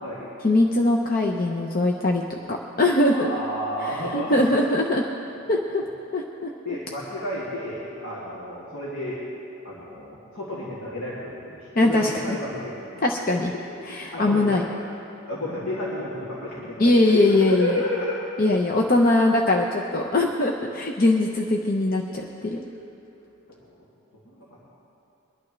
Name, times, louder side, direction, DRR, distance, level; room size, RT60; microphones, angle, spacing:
voice 1, 0.4-3.3 3.8-5.0 5.5-5.8 6.1-6.5 11.8-12.4 13.0-13.5 13.9-14.6 16.8-17.8 18.4-22.6, left 2 dB, 45° left, 1 dB, 0.7 m, -21 dB
voice 2, 3.1-4.7 5.7-5.8 6.6-9.2 9.6-13.0 13.3-14.9 15.3-18.1 22.5-22.8 23.5-23.8 24.2-24.8, left 1 dB, 75° left, -7 dB, 2.4 m, -32 dB
22.5 x 11.0 x 3.2 m, 2.8 s
head